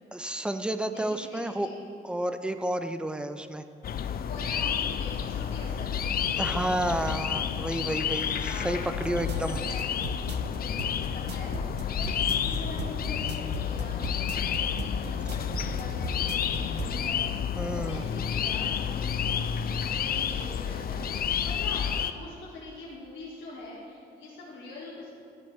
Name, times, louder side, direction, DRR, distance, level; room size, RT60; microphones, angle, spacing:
voice 1, 0.1-1.7 2.0-3.7 6.4-9.6 17.6-18.0, right 1 dB, 5° right, 9 dB, 0.5 m, -31 dB
voice 2, 0.9-1.8 4.2-7.2 8.4-17.2 17.7-25.1, left 2 dB, 65° left, -7 dB, 1.8 m, -44 dB
sound 1, 3.8-22.1, left 8 dB, 50° left, 0.5 m, -30 dB
sound 2, 9.0-16.9, right 6 dB, 60° right, 0.7 m, -37 dB
13.0 x 7.5 x 3.5 m, 2.4 s
cardioid pair, 90°, 20 cm